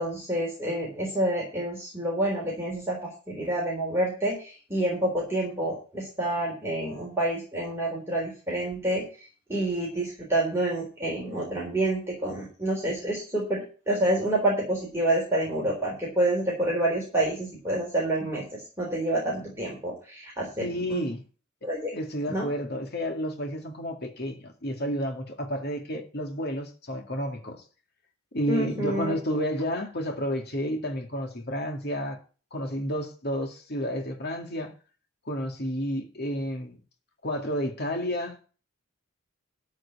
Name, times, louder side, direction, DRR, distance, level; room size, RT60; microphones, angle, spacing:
voice 1, 0.0-9.0 9.5-21.1 21.6-21.9 22.3-22.5 28.5-29.2, right 1 dB, 10° right, 3.7 m, -28 dB
voice 2, 20.6-21.2 21.9-27.6 28.3-32.2 32.5-34.7 35.3-36.8 37.2-38.4, equal, 50° left, 2.1 m, -31 dB
13.5 x 4.7 x 8.7 m
head